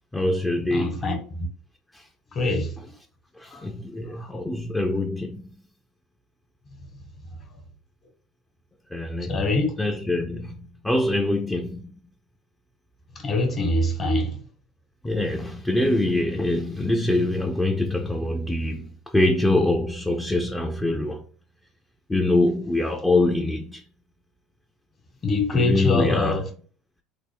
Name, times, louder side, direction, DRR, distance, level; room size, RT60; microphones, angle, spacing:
voice 1, 0.1-1.0 1.9-2.0 3.4-5.4 8.9-9.5 9.8-11.9 15.0-21.2 22.1-23.8 25.5-26.4, left 2 dB, 10° left, 0.5 m, -24 dB
voice 2, 0.7-1.5 2.3-2.8 3.5-3.7 4.1-4.3 9.2-9.7 13.1-14.4 25.2-26.5, left 2 dB, 40° left, 1.2 m, -24 dB
3.6 x 2.0 x 3.4 m
hypercardioid pair, 75°, 0 cm